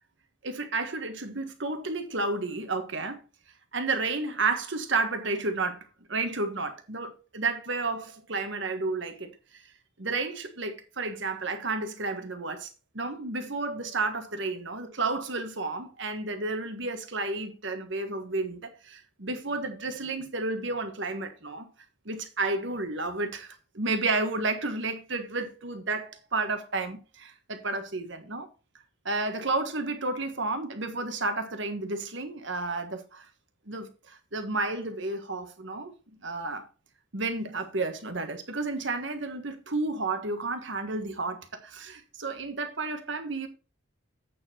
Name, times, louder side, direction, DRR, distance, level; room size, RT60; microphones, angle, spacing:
voice 1, 0.4-3.2 3.7-5.8 6.1-9.6 10.0-21.7 22.0-28.5 29.0-33.3 33.7-35.9 36.2-36.7 37.1-43.5, right 3 dB, 60° right, 1.5 m, -31 dB
8.5 x 6.9 x 4.3 m
head